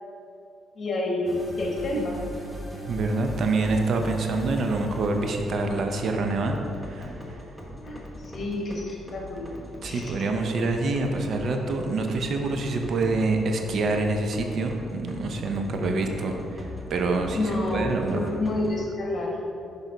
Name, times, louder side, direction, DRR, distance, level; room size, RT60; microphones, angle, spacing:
voice 1, 0.7-2.2 7.7-9.5 9.9-10.1 17.3-19.4, left 2 dB, 45° left, -1 dB, 1.5 m, -29 dB
sound 1, 1.3-18.7, left 1 dB, 5° right, 1.1 m, -40 dB
voice 2, 2.8-6.6 6.8-7.4 9.8-18.2, right 3 dB, 60° right, 4 dB, 0.6 m, -26 dB
6.3 x 5.3 x 3.9 m, 2.6 s
cardioid pair, 90°, 0 cm